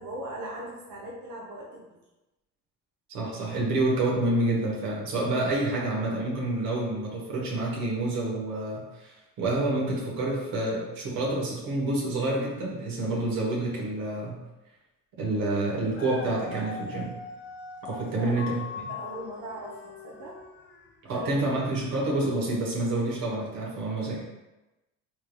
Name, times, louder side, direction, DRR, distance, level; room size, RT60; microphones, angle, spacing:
voice 1, 0.0-2.0 18.0-20.4 21.1-21.6, right 1 dB, 60° right, -4 dB, 1.0 m, -39 dB
voice 2, 3.1-14.4 15.2-17.1 17.8-18.5 21.1-24.2, right 2 dB, 85° right, -4 dB, 1.3 m, -28 dB
Dog, 15.9-21.0 21.6-21.7, left 5 dB, 35° left, 0.6 m, -41 dB
4.5 x 3.3 x 2.3 m, 1.0 s
cardioid pair, 85°, 34 cm